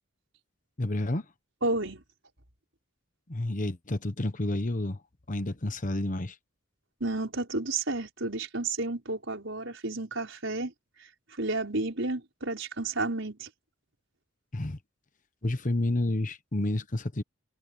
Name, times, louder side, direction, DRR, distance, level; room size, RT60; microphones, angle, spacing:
voice 1, 0.8-1.3 3.3-5.0 5.3-6.4 14.5-14.8 15.4-17.2, left 1 dB, 40° left, 1.1 m, -30 dB
voice 2, 1.6-2.0 7.0-10.7 11.0-13.5, right 2 dB, 65° right, 5.6 m, -31 dB
head